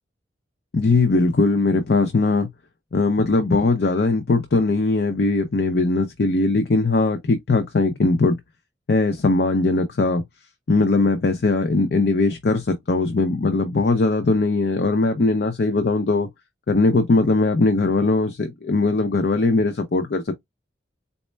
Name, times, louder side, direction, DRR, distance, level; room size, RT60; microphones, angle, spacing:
voice 1, 0.7-2.5 2.9-8.4 8.9-10.2 10.7-16.3 16.7-20.4, left 3 dB, 60° left, 0.5 m, -20 dB
4.2 x 2.1 x 3.2 m
head